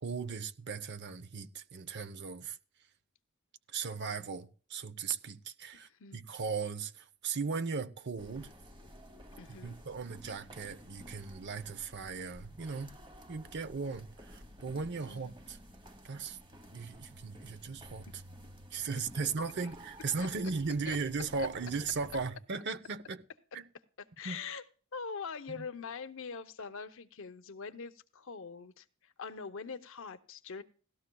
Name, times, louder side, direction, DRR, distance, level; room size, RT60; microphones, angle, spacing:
voice 1, 0.0-2.6 3.7-8.5 9.6-12.9 13.3-15.6 16.0-16.4 16.7-18.1 18.7-23.2 23.5-23.6 24.2-24.4 25.5-25.7, right 4 dB, 55° right, 0.7 m, -37 dB
voice 2, 5.9-6.2 9.4-9.7 15.0-15.3 18.9-19.3 20.2-20.3 20.9-21.0 24.0-24.6 24.9-30.6, left 5 dB, 65° left, 0.7 m, -43 dB
sound 1, 8.2-22.3, equal, 25° right, 1.2 m, -53 dB
17.5 x 13.0 x 2.3 m
head